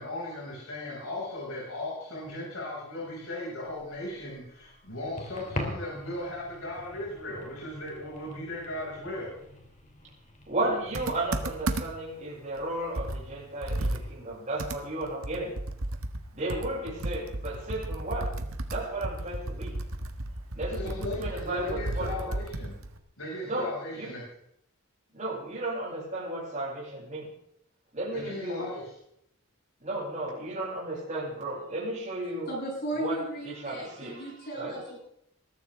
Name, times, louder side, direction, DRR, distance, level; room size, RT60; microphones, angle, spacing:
voice 1, 0.0-9.4 20.7-22.7 23.2-24.2 28.1-28.8, left 1 dB, 80° left, -4 dB, 6.3 m, -37 dB
sound 1, 3.6-11.8, left 1 dB, 35° left, 3.2 m, -43 dB
voice 2, 10.5-15.6 16.3-18.3 18.7-19.7 20.5-22.4 23.4-24.1 25.1-27.3 27.9-28.7 29.8-32.5 33.0-34.8, right 1 dB, 35° right, -5 dB, 6.8 m, -34 dB
Computer keyboard, 10.9-12.1 12.6-12.7 13.0-16.2 16.5-23.0, right 1 dB, 85° right, 1.5 m, -34 dB
voice 3, 32.5-35.0, right 1 dB, 50° left, -4 dB, 7.9 m, -35 dB
21.5 x 13.5 x 3.7 m, 0.73 s
head